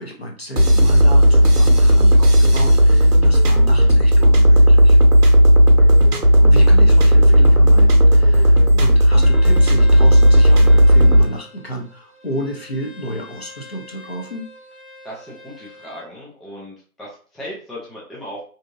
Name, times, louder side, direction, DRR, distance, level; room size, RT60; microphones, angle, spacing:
voice 1, 0.0-5.0 6.4-14.4, right 1 dB, 45° left, 0 dB, 0.6 m, -31 dB
sound 1, 0.6-11.2, equal, 90° right, 0.7 m, -12 dB
Bowed string instrument, 9.1-16.1, left 3 dB, 25° left, 1.2 m, -43 dB
voice 2, 15.0-18.4, equal, ahead, -6 dB, 0.4 m, -36 dB
2.6 x 2.6 x 2.3 m, 0.42 s
figure-of-eight pair, 155°, 45 cm